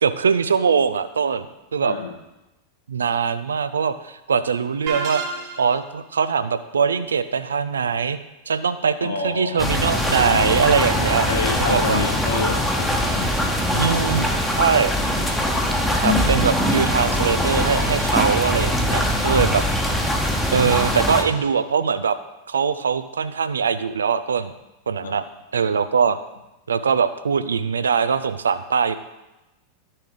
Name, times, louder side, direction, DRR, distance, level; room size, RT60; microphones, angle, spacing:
voice 1, 0.0-1.5 1.7-1.9 2.9-5.2 5.6-8.2 8.5-11.3 11.6-12.0 13.7-14.3 14.6-14.9 16.0-19.6 20.5-22.2 22.5-24.5 24.9-25.2 25.5-26.2 26.7-28.9, right 6 dB, 70° right, 12 dB, 0.5 m, -22 dB
voice 2, 1.8-2.1 9.0-9.6 11.3-13.3 25.0-25.1, left 4 dB, 70° left, 1 dB, 1.5 m, -28 dB
sound 1, 4.9-5.9, right 5 dB, 45° right, 1.2 m, -29 dB
sound 2, 9.6-21.2, equal, 5° left, 1.2 m, -22 dB
11.5 x 6.6 x 3.8 m, 0.99 s
figure-of-eight pair, 90°, 0 cm